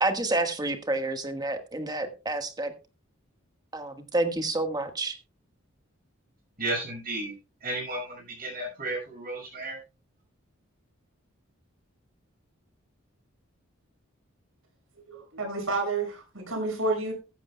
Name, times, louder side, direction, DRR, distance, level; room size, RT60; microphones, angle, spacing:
voice 1, 0.0-2.7 3.7-5.2, right 2 dB, 20° right, 7 dB, 1.3 m, -29 dB
voice 2, 6.6-7.3 7.6-9.8, right 2 dB, 45° right, -1 dB, 6.4 m, -33 dB
voice 3, 15.1-17.1, right 3 dB, 70° right, 3 dB, 6.1 m, -30 dB
15.0 x 14.0 x 2.2 m, 0.29 s
head